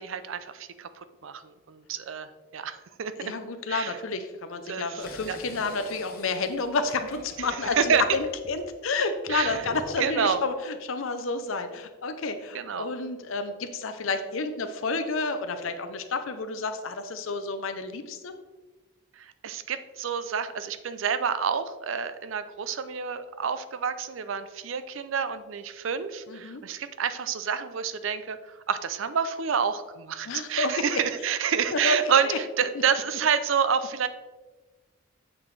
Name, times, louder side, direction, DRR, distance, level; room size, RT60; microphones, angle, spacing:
voice 1, 0.0-1.4 1.7-3.1 3.7-4.0 4.7-5.4 7.4-8.0 9.3-9.7 10.0-10.4 12.5-12.9 19.2-28.4 28.7-34.1, right 7 dB, 70° right, 12 dB, 0.4 m, -28 dB
voice 2, 3.2-18.3 26.3-26.6 30.3-30.8 31.7-32.0 32.2-32.4, left 3 dB, 75° left, 8 dB, 0.6 m, -30 dB
sound 1, 5.0-10.3, left 1 dB, 45° left, 1.1 m, -44 dB
7.4 x 5.9 x 3.2 m, 1.2 s
head